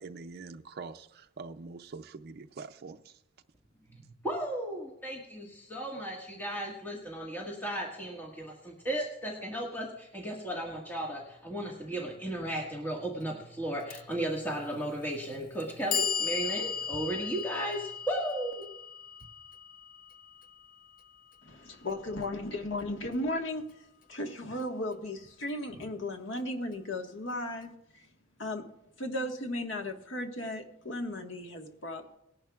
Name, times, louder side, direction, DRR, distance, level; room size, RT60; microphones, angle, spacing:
voice 1, 0.0-3.2, right 4 dB, 55° right, 6 dB, 0.5 m, -44 dB
voice 2, 4.2-18.7, right 1 dB, 10° left, -2 dB, 1.7 m, -35 dB
Clock, 13.9-14.0 15.0-15.1 15.6-21.6, left 7 dB, 45° left, 0.6 m, -36 dB
voice 3, 21.4-23.7 24.1-27.7 28.4-28.6 29.0-32.2, left 1 dB, 80° left, 4 dB, 1.5 m, -35 dB
19.5 x 11.0 x 2.4 m, 0.82 s
head